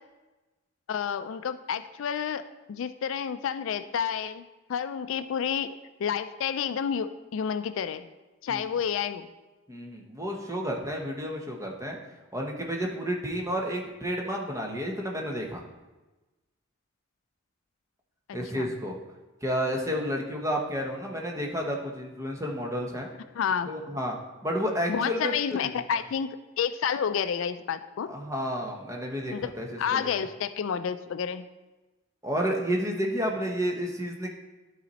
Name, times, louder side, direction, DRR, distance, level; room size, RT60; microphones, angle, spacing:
voice 1, 0.9-2.4 2.7-5.7 6.0-8.1 8.4-9.3 18.5-18.7 23.3-23.7 24.9-28.1 29.3-29.5 29.8-31.5, left 7 dB, 70° left, 11 dB, 0.3 m, -30 dB
voice 2, 9.7-12.0 12.3-15.6 18.3-19.0 19.4-23.1 23.6-24.2 24.4-25.7 28.1-30.2 32.2-34.3, equal, 15° right, 0 dB, 0.9 m, -31 dB
12.0 x 4.1 x 4.1 m, 1.2 s
head